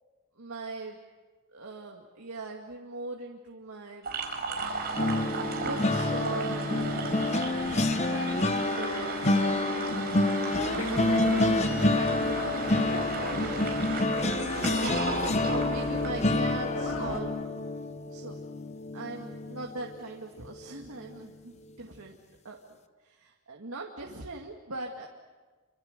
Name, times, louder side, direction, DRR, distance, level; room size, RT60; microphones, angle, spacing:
voice 1, 0.4-1.0 1.5-4.1 4.9-5.2 5.5-7.3 7.6-9.6 10.6-13.7 15.5-17.6 18.1-18.4 18.9-22.2 22.4-22.6 23.0-25.1, right 3 dB, 80° right, 0 dB, 2.2 m, -40 dB
sound 1, 4.0-16.1, right 3 dB, 45° right, 4.8 m, -35 dB
sound 2, 4.9-20.1 20.5-20.8 21.0-21.3, left 2 dB, 30° left, 0.9 m, -28 dB
sound 3, 10.5-17.2, left 2 dB, 65° left, 2.4 m, -37 dB
28.0 x 25.5 x 6.7 m, 1.3 s
head